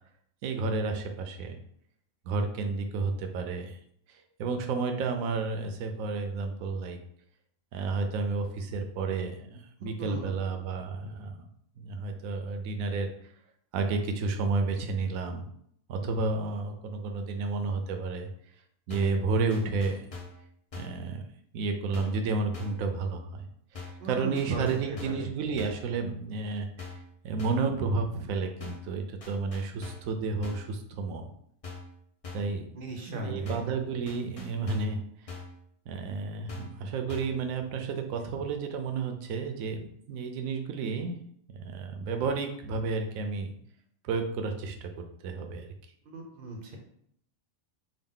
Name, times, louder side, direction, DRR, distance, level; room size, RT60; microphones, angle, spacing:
voice 1, 0.4-1.6 2.3-3.8 4.4-7.0 7.7-11.3 11.8-13.1 13.7-15.4 15.9-18.3 18.9-20.1 20.7-21.2 21.5-23.2 23.7-26.9 27.2-31.3 32.3-32.7 33.1-35.0 35.9-41.2 41.5-43.5 44.0-45.7, right 4 dB, 75° right, 5 dB, 1.0 m, -31 dB
voice 2, 10.0-10.3 24.0-25.3 32.7-33.6 46.1-46.8, right 1 dB, 50° right, 2 dB, 0.7 m, -38 dB
sound 1, 18.9-19.2 19.5-20.4 20.7-21.0 21.9-22.2 22.5-22.9 23.7-24.1 24.3-25.3 25.6-25.9 26.8-27.1 27.4-27.7 28.6-28.9 29.2-30.1 30.4-30.7 31.6-32.0 32.2-32.6 33.4-33.8 34.1-35.0 35.3-35.6 36.5-36.8 37.1-37.4, left 4 dB, 50° left, 0.4 m, -43 dB
3.8 x 2.3 x 3.6 m, 0.68 s
omnidirectional pair, 1.5 m